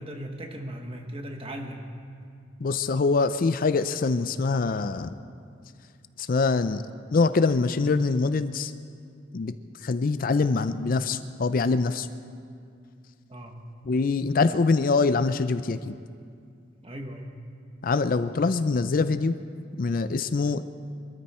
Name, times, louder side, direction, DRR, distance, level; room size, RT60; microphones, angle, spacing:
voice 1, 0.0-1.9 13.3-13.6 16.8-17.3, equal, 30° right, 3 dB, 1.4 m, -37 dB
voice 2, 2.6-5.1 6.2-6.8 7.1-8.7 9.3-9.5 9.8-12.1 13.9-15.9 17.8-19.3 19.8-20.6, left 4 dB, 45° left, 12 dB, 0.4 m, -24 dB
23.5 x 13.5 x 4.3 m, 2.4 s
head